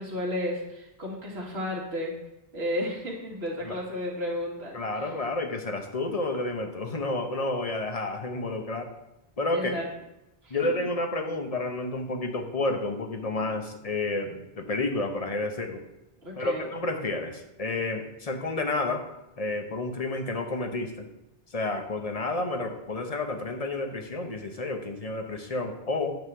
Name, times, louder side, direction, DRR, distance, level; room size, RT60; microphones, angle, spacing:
voice 1, 0.0-2.1 2.5-4.8 9.5-9.9 10.4-10.6 16.2-16.7, left 1 dB, 85° right, -3 dB, 2.2 m, -32 dB
voice 2, 4.7-8.9 9.4-9.7 10.5-15.8 16.4-19.0 19.4-21.1 21.5-26.2, left 2 dB, 40° left, 4 dB, 1.1 m, -30 dB
9.2 x 3.8 x 6.9 m, 0.94 s
omnidirectional pair, 1.0 m